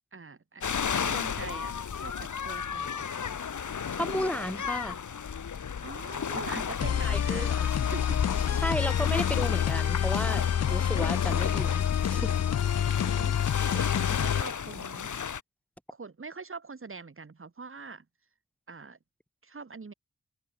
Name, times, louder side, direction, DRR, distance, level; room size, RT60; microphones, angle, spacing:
voice 1, 0.1-0.6 1.0-3.2 5.8-7.5 7.8-8.2 8.5-9.0 12.8-15.1 15.9-18.0 18.7-19.0 19.4-19.9, right 4 dB, 45° right, 3.3 m, -44 dB
sound 1, 0.6-15.4, left 7 dB, 80° left, 2.6 m, -34 dB
voice 2, 4.0-5.0 6.3-6.6 7.0-7.7 8.6-11.8 12.1-12.4, equal, 5° left, 3.6 m, -33 dB
sound 2, 6.8-14.4, left 9 dB, 60° left, 0.6 m, -27 dB
wide cardioid pair, 75°, 29 cm